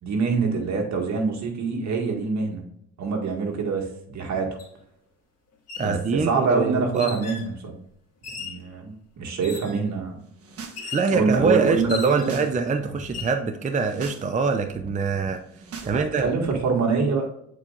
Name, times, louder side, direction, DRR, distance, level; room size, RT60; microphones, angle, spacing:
voice 1, 0.0-2.6 3.0-4.5 5.8-7.8 8.4-10.2 10.8-12.5 12.8-12.9 15.8-17.3, right 4 dB, 65° right, 1 dB, 1.8 m, -25 dB
sound 1, 4.6-4.7 5.5-5.9 6.9-7.5 8.2-8.6 9.4-9.8 10.8-11.1 11.9-12.5 13.0-13.4, left 6 dB, 55° left, 1.9 m, -37 dB
voice 2, 5.8-7.1 10.9-15.4 15.8-16.3, right 5 dB, 25° right, 7 dB, 0.5 m, -24 dB
sound 2, 10.3-10.8 11.1-12.5 12.8-13.2 13.7-14.2 14.5-16.6, right 4 dB, 50° right, 1.4 m, -42 dB
8.2 x 4.6 x 2.5 m, 0.75 s
cardioid pair, 90°, 30 cm